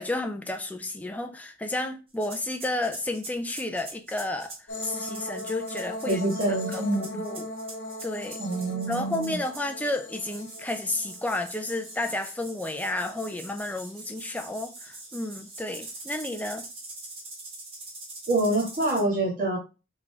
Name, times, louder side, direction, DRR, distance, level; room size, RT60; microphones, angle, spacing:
voice 1, 0.0-4.5 4.8-6.2 6.7-7.5 8.0-8.4 8.9-16.6, left 2 dB, 10° left, 0.4 m, -31 dB
sound 1, 2.1-9.8 10.2-19.0, right 2 dB, 30° right, 1.1 m, -43 dB
sound 2, 4.7-12.9 13.3-14.1 15.3-15.7, left 1 dB, 75° left, 1.0 m, -39 dB
voice 2, 6.1-7.2 8.4-9.4 18.3-19.6, right 2 dB, 45° right, 1.4 m, -26 dB
3.7 x 3.6 x 3.2 m
head